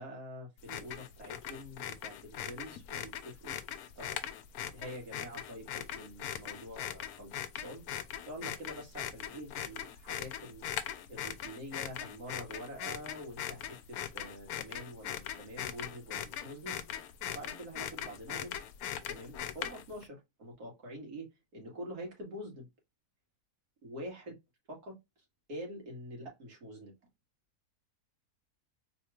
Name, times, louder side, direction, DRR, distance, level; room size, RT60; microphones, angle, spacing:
voice 1, 0.0-3.6 4.0-4.3 4.7-10.6 11.1-18.7 19.1-21.3 21.5-22.7 23.8-24.3 24.7-25.0 25.5-26.9, equal, 75° right, 2.2 m, -46 dB
sound 1, 0.6-20.0, left 10 dB, 75° left, 1.0 m, -41 dB
4.1 x 3.0 x 2.3 m
omnidirectional pair, 1.7 m